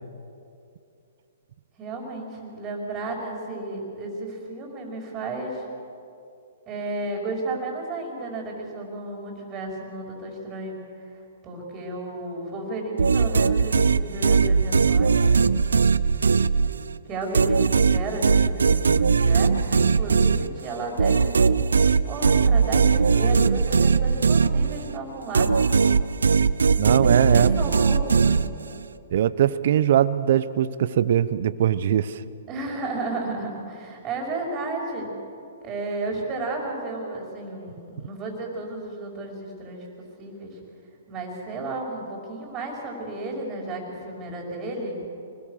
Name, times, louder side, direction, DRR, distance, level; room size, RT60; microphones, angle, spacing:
voice 1, 1.8-5.7 6.7-10.8 11.2-15.4 17.1-21.8 22.0-25.5 27.0-28.4 32.5-35.1 35.6-39.9 40.2-40.6 41.1-45.0, right 2 dB, 25° right, -1 dB, 5.2 m, -33 dB
sound 1, 13.0-17.0 17.3-25.0 25.3-28.8, right 5 dB, 80° right, 0.7 m, -20 dB
voice 2, 26.8-27.7 29.1-32.2, right 10 dB, 60° right, 15 dB, 0.9 m, -21 dB
25.0 x 20.5 x 6.6 m, 2.6 s
hypercardioid pair, 125°, 0 cm